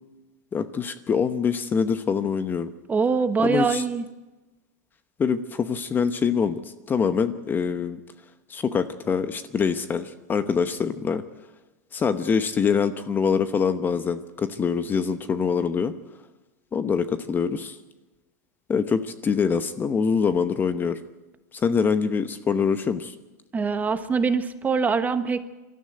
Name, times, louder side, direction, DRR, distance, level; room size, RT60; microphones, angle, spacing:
voice 1, 0.5-2.7 3.4-3.8 5.2-8.0 8.5-11.2 11.9-15.9 16.7-17.8 18.7-21.0 21.5-23.1, left 6 dB, 20° left, 11 dB, 0.9 m, -24 dB
voice 2, 2.9-4.0 23.5-25.5, right 5 dB, 15° right, 10 dB, 1.2 m, -23 dB
22.5 x 13.5 x 9.0 m, 1.1 s
hypercardioid pair, 120°, 9 cm